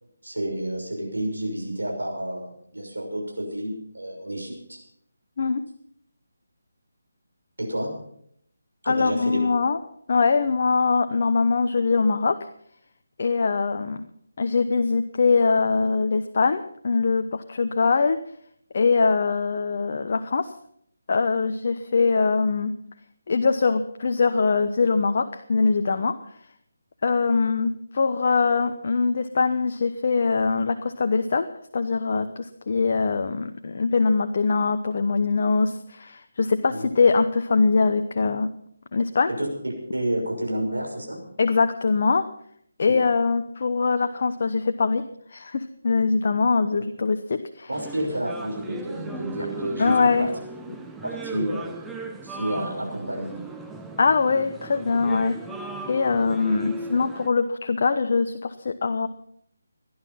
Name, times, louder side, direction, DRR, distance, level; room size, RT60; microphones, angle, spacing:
voice 1, 0.2-4.8 7.6-7.9 8.8-9.4 36.7-36.9 39.3-39.5 39.9-41.2 42.9-43.0 47.7-49.9 50.2-50.3 51.0-51.8 52.2-53.3, right 1 dB, 85° right, 0 dB, 6.3 m, -30 dB
voice 2, 8.8-9.8 10.1-12.4 13.2-14.0 14.4-18.2 18.7-20.5 21.1-22.7 23.3-26.2 27.0-31.5 31.7-38.5 38.9-39.3 41.4-42.3 42.8-45.0 45.3-47.7 49.8-50.3 54.0-55.4 55.9-59.1, left 4 dB, 50° left, 7 dB, 0.9 m, -22 dB
sound 1, 47.7-57.3, right 2 dB, 5° right, 0.9 m, -37 dB
17.5 x 11.5 x 5.6 m, 0.68 s
figure-of-eight pair, 155°, 0 cm